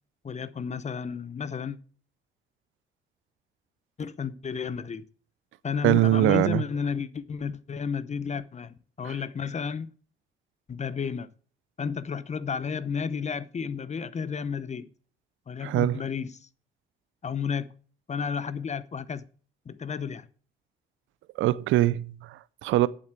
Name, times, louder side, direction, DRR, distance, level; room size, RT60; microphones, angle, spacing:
voice 1, 0.2-1.8 4.0-5.0 5.6-9.9 10.7-11.3 11.8-14.9 15.5-16.5 17.2-17.7 18.1-19.3 19.7-20.3, left 6 dB, 35° left, 0.8 m, -32 dB
voice 2, 5.8-6.6 9.0-9.1 15.6-16.0 21.4-22.9, right 15 dB, 85° right, 0.5 m, -23 dB
8.4 x 7.6 x 8.2 m
cardioid pair, 90°, 20 cm